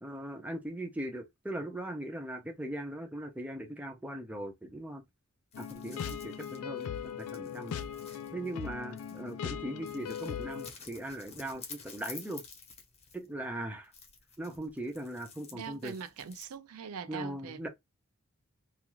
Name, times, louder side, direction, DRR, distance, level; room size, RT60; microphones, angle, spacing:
voice 1, 0.0-5.0 5.6-7.8 8.3-12.4 13.1-13.9 14.4-16.0 17.1-17.7, right 1 dB, 5° right, 0.5 m, -39 dB
sound 1, 5.5-10.7, left 8 dB, 85° left, 0.3 m, -39 dB
sound 2, 5.5-9.4 9.8-13.4 13.8-16.6, left 5 dB, 30° left, 0.9 m, -51 dB
voice 2, 15.5-17.7, right 6 dB, 80° right, 0.4 m, -42 dB
2.4 x 2.4 x 3.0 m
head